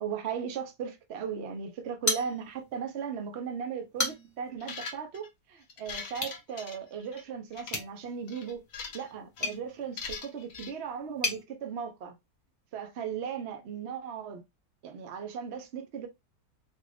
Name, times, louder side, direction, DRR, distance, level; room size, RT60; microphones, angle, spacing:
voice 1, 0.0-8.6 8.9-12.1 12.7-14.4 14.8-16.1, right 7 dB, 55° right, 0.8 m, -37 dB
sound 1, 2.0-2.8 3.2-3.3 3.8-4.5 6.1-6.4 7.7-11.4, left 2 dB, 15° left, 0.8 m, -35 dB
sound 2, 4.6-5.3 5.7-7.2 7.5-7.8 8.3-9.1 9.4-9.6 10.0-10.7, left 5 dB, 60° left, 1.1 m, -41 dB
3.7 x 2.4 x 3.3 m
omnidirectional pair, 1.8 m